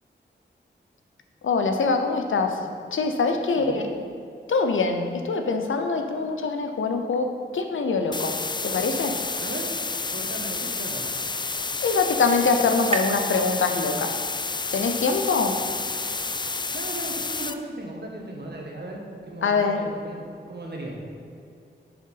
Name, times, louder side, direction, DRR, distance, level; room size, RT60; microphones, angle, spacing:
voice 1, 1.4-2.6 2.9-3.9 4.5-8.3 8.6-9.2 11.8-14.2 14.7-15.6 19.4-19.9, left 4 dB, 80° left, 5 dB, 0.7 m, -24 dB
voice 2, 3.5-3.9 9.4-9.7 10.1-11.0 16.7-21.0, right 1 dB, 55° right, 0 dB, 1.6 m, -37 dB
sound 1, 8.1-17.5, left 3 dB, 20° left, 0.4 m, -30 dB
sound 2, 10.5-14.3, right 3 dB, 35° right, 0.6 m, -37 dB
9.4 x 3.7 x 5.6 m, 2.4 s
cardioid pair, 50°, 20 cm